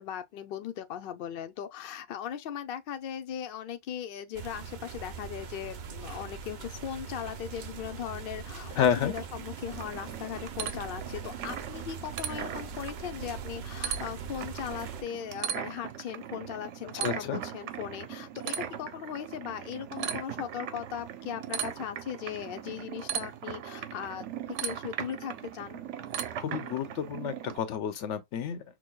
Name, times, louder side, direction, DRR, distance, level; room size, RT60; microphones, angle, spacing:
voice 1, 0.0-25.8, left 9 dB, 60° left, 0.7 m, -38 dB
sound 1, 4.3-15.0, right 6 dB, 50° right, 0.6 m, -42 dB
voice 2, 8.8-9.1 17.0-17.4 26.4-28.6, left 8 dB, 90° left, 1.0 m, -30 dB
sound 2, 9.2-27.6, right 9 dB, 85° right, 0.9 m, -38 dB
6.0 x 2.2 x 2.2 m
omnidirectional pair, 1.2 m